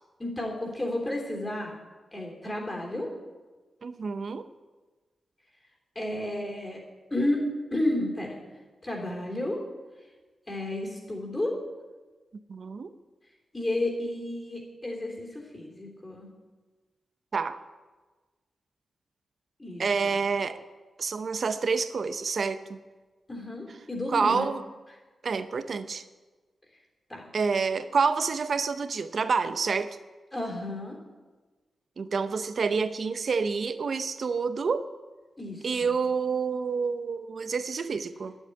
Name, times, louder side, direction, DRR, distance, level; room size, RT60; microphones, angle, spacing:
voice 1, 0.2-1.7 2.1-3.1 5.9-6.8 7.1-7.4 7.7-8.4 8.8-9.6 10.5-11.6 13.5-16.3 19.6-20.2 23.3-24.5 27.1-27.3 30.3-31.0 35.4-35.9, left 1 dB, 20° left, -1 dB, 3.4 m, -32 dB
voice 2, 3.8-4.4 12.5-12.9 17.3-17.6 19.8-20.6 21.0-22.8 24.1-24.6 25.2-26.0 27.3-30.0 32.0-34.9 35.6-38.4, right 5 dB, 50° right, 12 dB, 0.8 m, -28 dB
11.5 x 8.1 x 10.0 m, 1.3 s
wide cardioid pair, 125°, 0 cm